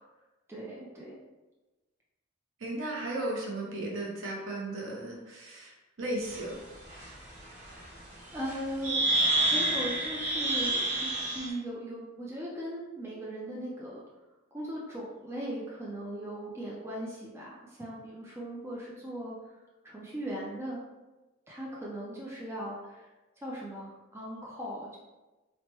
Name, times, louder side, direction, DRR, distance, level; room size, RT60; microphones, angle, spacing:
voice 1, 0.5-1.2 8.3-14.0 14.5-19.4 19.8-20.8 21.5-23.1 23.4-25.0, equal, 10° right, -5 dB, 0.4 m, -38 dB
voice 2, 2.6-6.6, right 1 dB, 65° right, -2 dB, 0.7 m, -35 dB
sound 1, 6.3-6.4 6.9-7.0 8.5-8.6 8.8-11.5, right 2 dB, 35° right, 0.9 m, -28 dB
3.2 x 2.0 x 2.9 m, 1.1 s
head